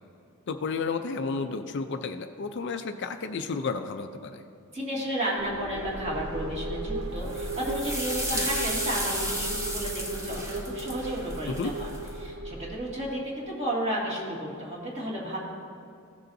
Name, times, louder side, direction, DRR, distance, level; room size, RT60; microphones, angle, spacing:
voice 1, 0.5-4.4 8.3-8.5 11.5-11.7, left 4 dB, 55° left, 8 dB, 0.4 m, -32 dB
voice 2, 4.7-11.9 12.2-15.4, right 1 dB, 30° right, -5 dB, 2.1 m, -32 dB
sound 1, 5.4-13.1, right 2 dB, 70° right, 0.8 m, -36 dB
sound 2, 7.2-12.1, equal, 15° right, 1.0 m, -33 dB
16.0 x 6.6 x 2.7 m, 2.5 s
head